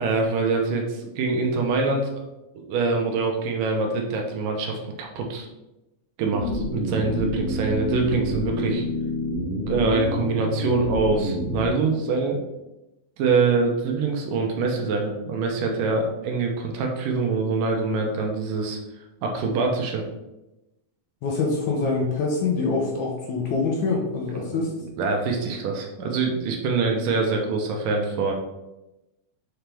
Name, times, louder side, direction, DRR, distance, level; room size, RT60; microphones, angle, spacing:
voice 1, 0.0-2.3 2.6-5.5 6.2-8.9 9.7-12.4 13.2-18.8 19.2-20.0 24.4-28.3, right 4 dB, 75° right, 2 dB, 2.4 m, -24 dB
sound 1, 6.3-11.7, equal, 30° right, 1.9 m, -28 dB
voice 2, 21.2-24.7, left 3 dB, 70° left, -1 dB, 1.9 m, -25 dB
5.9 x 5.6 x 3.4 m, 0.96 s
omnidirectional pair, 4.1 m